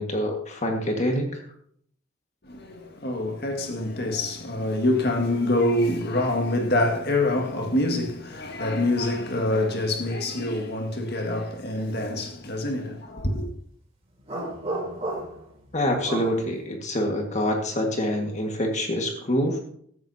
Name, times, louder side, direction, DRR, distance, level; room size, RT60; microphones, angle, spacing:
voice 1, 0.0-1.4 15.7-19.6, equal, 35° left, 1.7 m, -26 dB
voice 2, 2.4-13.5, left 1 dB, 50° left, 1.9 m, -26 dB
sound 1, 14.3-15.5 16.0-16.4, right 1 dB, 30° right, 3.4 m, -31 dB
15.5 x 12.5 x 2.8 m
head